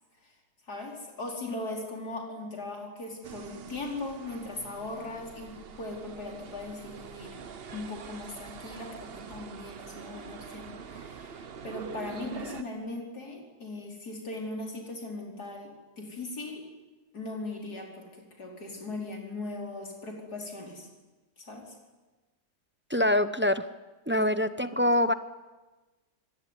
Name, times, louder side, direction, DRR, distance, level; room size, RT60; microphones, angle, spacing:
voice 1, 0.7-7.4 7.7-16.7 17.1-20.9 21.4-21.8 24.1-24.3 24.6-24.8, left 2 dB, 75° left, 1 dB, 5.1 m, -39 dB
sound 1, 3.2-12.6, right 6 dB, 45° right, 1.1 m, -44 dB
voice 2, 22.9-23.7 24.1-25.1, left 1 dB, 10° right, 12 dB, 0.6 m, -24 dB
26.0 x 21.0 x 9.9 m, 1.2 s
omnidirectional pair, 1.7 m